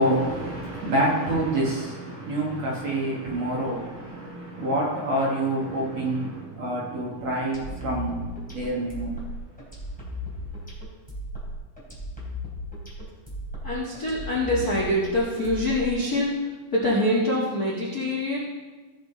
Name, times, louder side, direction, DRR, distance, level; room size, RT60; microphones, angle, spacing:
voice 1, 0.0-9.1, right 1 dB, 50° right, -4 dB, 2.2 m, -27 dB
sound 1, 7.5-16.2, left 1 dB, ahead, 2.9 m, -36 dB
voice 2, 13.6-18.4, left 1 dB, 55° left, -5 dB, 1.0 m, -25 dB
17.0 x 6.5 x 4.0 m, 1.3 s
omnidirectional pair, 5.0 m